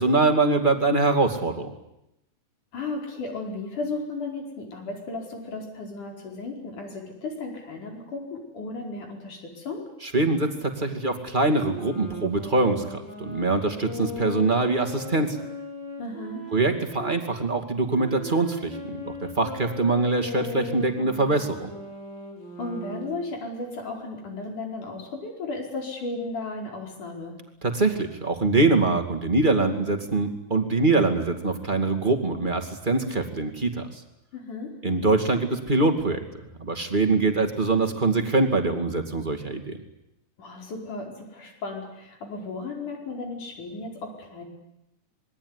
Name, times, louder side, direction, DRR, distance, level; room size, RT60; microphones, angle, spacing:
voice 1, 0.0-1.7 10.1-15.4 16.5-21.7 27.6-33.9 34.8-36.2 36.6-39.8, right 3 dB, 15° right, 5 dB, 2.2 m, -23 dB
voice 2, 2.7-9.8 16.0-16.4 22.6-27.4 34.3-34.8 40.4-44.4, left 3 dB, 80° left, 2 dB, 6.4 m, -35 dB
sound 1, 11.5-17.2 17.9-23.3, left 1 dB, 35° left, 4.5 m, -38 dB
27.0 x 21.5 x 9.9 m, 0.86 s
omnidirectional pair, 3.5 m